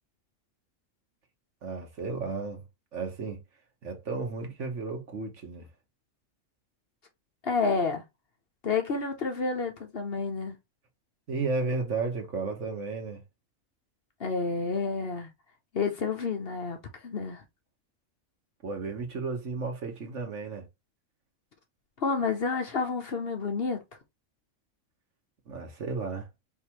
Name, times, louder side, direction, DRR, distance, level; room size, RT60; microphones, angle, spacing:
voice 1, 1.6-2.6 2.9-3.4 3.8-5.7 11.3-13.2 18.6-20.7 25.5-26.3, right 4 dB, 60° right, 1.6 m, -33 dB
voice 2, 7.4-8.0 8.6-10.6 14.2-15.3 15.7-17.4 22.0-23.8, left 4 dB, 50° left, 1.0 m, -29 dB
4.8 x 3.6 x 3.0 m
omnidirectional pair, 1.4 m